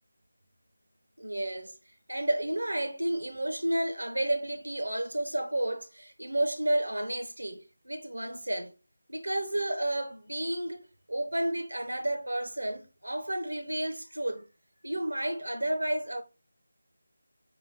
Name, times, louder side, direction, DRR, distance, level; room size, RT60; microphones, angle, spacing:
voice 1, 1.2-1.8 2.1-8.7 9.1-14.4 14.8-16.2, right 1 dB, 75° right, 0.7 m, -31 dB
5.5 x 2.4 x 3.5 m
figure-of-eight pair, 160°, 0 cm